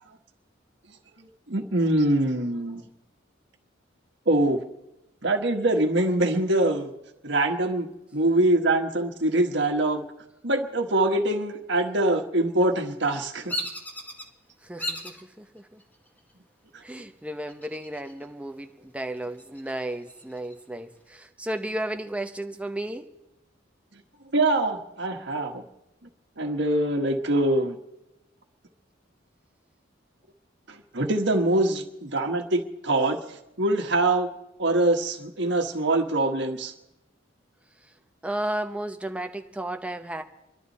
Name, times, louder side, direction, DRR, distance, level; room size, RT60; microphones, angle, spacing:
voice 1, 1.2-2.8 4.3-4.6 5.2-6.9 7.2-7.9 8.1-10.0 10.4-13.5 23.9-24.0 24.3-25.6 26.4-27.8 30.7-34.3 34.6-36.7, right 1 dB, 65° right, 4 dB, 1.5 m, -24 dB
Bird vocalization bird call bird song, 13.5-14.3 14.8-15.2 15.8-16.3 17.5-18.2 18.6-18.7 19.2-20.6, equal, 10° left, 1.3 m, -35 dB
voice 2, 14.6-15.8 16.8-23.1 38.2-40.2, right 1 dB, 5° right, 5 dB, 0.9 m, -33 dB
25.5 x 11.5 x 4.2 m, 0.93 s
head